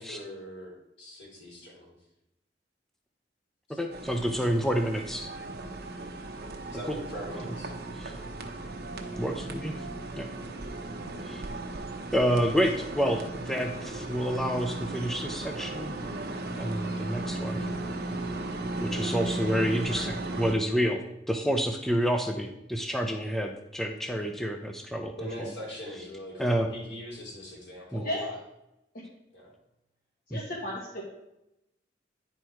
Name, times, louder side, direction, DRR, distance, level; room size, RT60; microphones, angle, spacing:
voice 1, 0.0-1.9 3.7-3.8 5.4-5.6 6.7-7.7 25.2-28.4 29.3-29.5, equal, 75° left, -3 dB, 3.3 m, -42 dB
voice 2, 3.7-5.3 6.9-7.0 8.0-8.1 9.2-9.7 10.2-10.3 11.2-11.4 12.1-16.0 16.6-17.7 18.8-21.0 21.3-25.5 26.4-26.7 27.9-28.0 30.3-30.4, equal, ahead, 3 dB, 0.5 m, -29 dB
sound 1, 3.9-20.6, right 2 dB, 60° right, 0.9 m, -36 dB
voice 3, 28.0-28.3 30.3-31.0, left 1 dB, 55° left, -4 dB, 1.4 m, -34 dB
9.9 x 4.5 x 4.6 m, 0.87 s
head